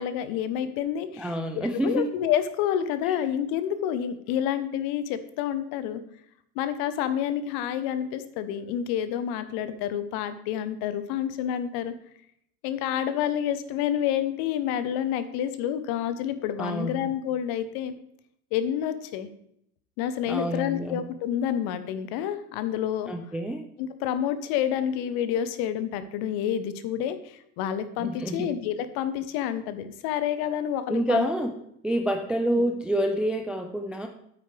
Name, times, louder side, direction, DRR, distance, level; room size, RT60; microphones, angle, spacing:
voice 1, 0.0-6.0 6.5-11.9 12.6-17.9 18.5-19.3 20.0-23.1 23.8-31.3 32.5-32.6, left 10 dB, 50° left, 12 dB, 1.0 m, -29 dB
voice 2, 1.2-2.1 3.1-3.2 16.6-17.0 20.2-21.0 23.1-23.7 28.0-28.5 30.9-31.5 31.8-34.1, equal, 5° right, 5 dB, 0.3 m, -27 dB
8.9 x 8.8 x 3.4 m, 0.73 s
hypercardioid pair, 95°, 47 cm